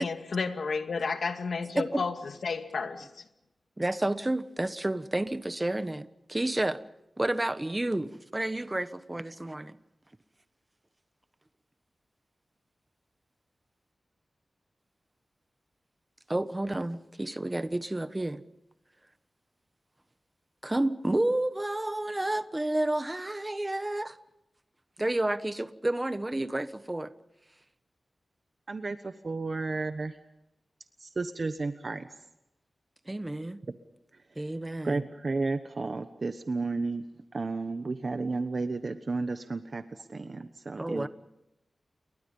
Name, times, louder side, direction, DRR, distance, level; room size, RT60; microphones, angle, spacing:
voice 1, 0.0-2.1 2.4-3.1, left 4 dB, 75° left, 2.3 m, -31 dB
voice 2, 3.8-6.8 7.2-9.8 16.3-18.4 20.6-24.2 25.0-27.1 33.1-33.6 34.4-35.1 40.8-41.1, right 1 dB, 20° right, 1.2 m, -30 dB
voice 3, 28.7-30.1 31.0-32.1 34.8-37.0 37.3-39.8 40.1-41.1, right 3 dB, 45° right, 1.1 m, -32 dB
29.5 x 23.0 x 5.5 m
wide cardioid pair, 110°, 0 cm